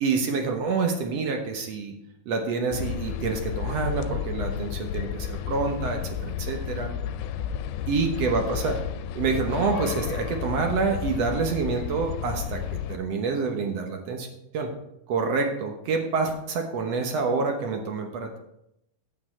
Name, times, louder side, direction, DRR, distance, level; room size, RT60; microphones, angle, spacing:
voice 1, 0.0-1.9 2.3-6.9 7.9-8.8 9.1-14.3 14.5-14.7 15.1-18.4, right 4 dB, 65° right, 3 dB, 1.7 m, -27 dB
sound 1, 2.7-13.0, left 9 dB, 85° left, 2.4 m, -32 dB
9.7 x 8.6 x 4.3 m, 0.80 s
omnidirectional pair, 4.3 m